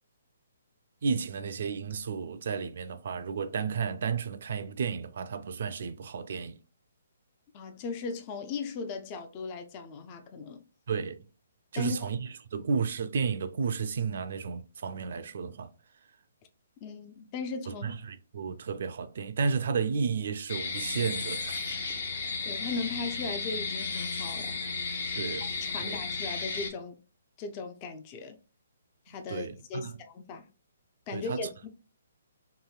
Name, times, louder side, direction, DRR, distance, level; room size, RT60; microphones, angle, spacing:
voice 1, 1.0-6.6 10.9-11.3 11.7-15.7 17.7-21.7 25.1-25.5 25.8-26.0 29.3-30.0 31.1-31.5, right 5 dB, 55° right, 0.3 m, -32 dB
voice 2, 7.5-10.6 11.7-12.1 16.8-17.9 22.4-24.6 25.6-27.0 27.4-28.4 29.1-30.4 31.1-31.7, left 4 dB, 30° left, 0.4 m, -37 dB
sound 1, 20.5-26.7, left 4 dB, 60° left, 0.7 m, -34 dB
3.0 x 2.6 x 2.3 m
figure-of-eight pair, 135°, 0 cm